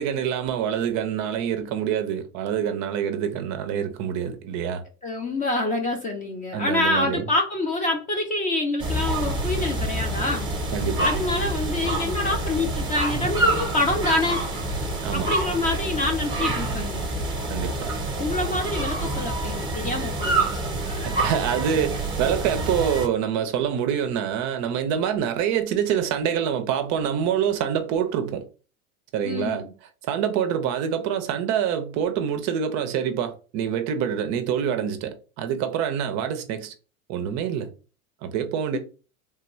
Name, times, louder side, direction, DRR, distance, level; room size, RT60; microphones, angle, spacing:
voice 1, 0.0-4.8 6.5-7.3 10.7-11.1 15.0-15.3 17.5-17.9 21.0-28.4 29.1-29.7 30.0-36.7 37.1-37.7 38.2-38.8, right 8 dB, 40° right, 0.5 m, -26 dB
voice 2, 5.0-10.5 11.0-14.4 15.1-17.0 18.2-20.5 29.2-29.7 38.7-38.8, left 2 dB, 20° left, 0.4 m, -26 dB
sound 1, 8.8-23.1, right 1 dB, 10° right, 0.8 m, -27 dB
3.3 x 2.1 x 3.0 m
hypercardioid pair, 105°, 43 cm